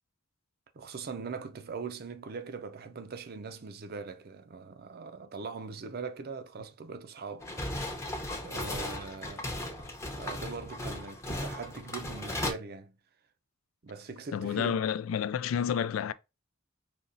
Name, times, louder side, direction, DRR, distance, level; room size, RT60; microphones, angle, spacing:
voice 1, 0.7-7.5 7.9-8.0 8.4-9.9 10.2-13.0 13.8-14.8, right 5 dB, 50° right, 0.5 m, -41 dB
sound 1, 7.4-12.5, left 1 dB, 15° left, 0.7 m, -36 dB
voice 2, 14.3-16.1, left 8 dB, 85° left, 0.3 m, -30 dB
5.2 x 2.9 x 2.6 m
head